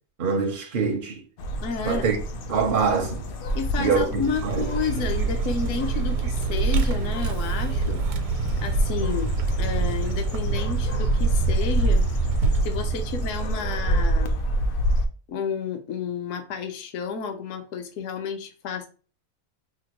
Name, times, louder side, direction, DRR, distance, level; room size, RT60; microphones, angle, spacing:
voice 1, 0.2-1.2 1.9-2.2 2.5-3.3 3.8-4.7, right 5 dB, 60° right, 0.5 m, -24 dB
sound 1, 1.4-15.1, right 1 dB, 90° left, 0.4 m, -27 dB
voice 2, 1.6-2.1 3.5-8.2 8.6-9.3 9.6-12.1 12.6-14.4 15.3-18.9, left 5 dB, 65° left, 1.0 m, -31 dB
Vehicle, 4.2-14.5, right 4 dB, 85° right, 1.1 m, -27 dB
5.0 x 2.2 x 2.9 m
omnidirectional pair, 1.5 m